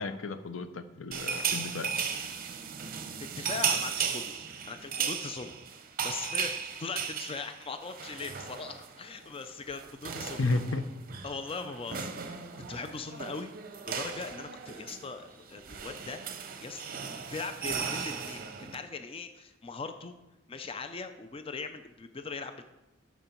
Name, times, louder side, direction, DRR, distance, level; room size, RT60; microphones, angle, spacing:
voice 1, 0.0-1.9 10.4-10.8, left 3 dB, 75° left, 11 dB, 0.6 m, -32 dB
sound 1, 1.1-9.0 9.2-9.4 9.7-18.8, right 6 dB, 45° right, 0.7 m, -36 dB
voice 2, 3.2-4.3 4.7-5.5 6.0-10.4 11.2-13.5 13.9-20.1 20.5-22.6, left 4 dB, 30° left, 8 dB, 0.4 m, -40 dB
9.0 x 6.2 x 4.4 m, 0.99 s
head